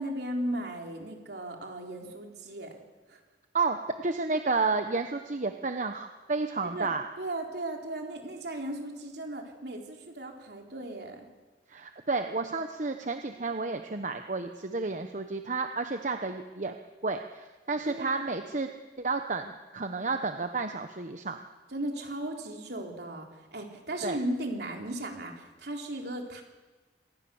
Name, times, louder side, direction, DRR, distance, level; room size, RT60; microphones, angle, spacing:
voice 1, 0.0-2.8 3.1-3.2 6.6-6.9 7.2-11.3 17.8-18.2 21.7-26.4, right 1 dB, 65° right, 2 dB, 3.9 m, -36 dB
voice 2, 3.5-7.1 11.7-16.8 17.0-18.7 19.0-21.4 24.0-24.2, right 3 dB, 45° right, 7 dB, 1.0 m, -31 dB
26.0 x 20.0 x 7.1 m, 1.3 s
head